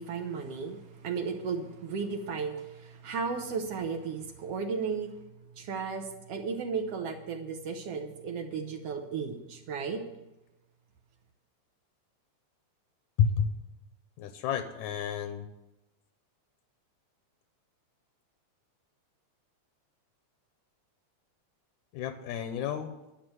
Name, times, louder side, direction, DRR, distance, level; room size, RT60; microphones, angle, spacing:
voice 1, 0.0-5.1 5.6-10.0, right 5 dB, 65° right, 4 dB, 1.7 m, -34 dB
voice 2, 13.2-13.5 14.2-15.5 21.9-22.9, left 7 dB, 80° left, 9 dB, 2.1 m, -30 dB
11.5 x 6.8 x 9.1 m, 0.98 s
omnidirectional pair, 3.5 m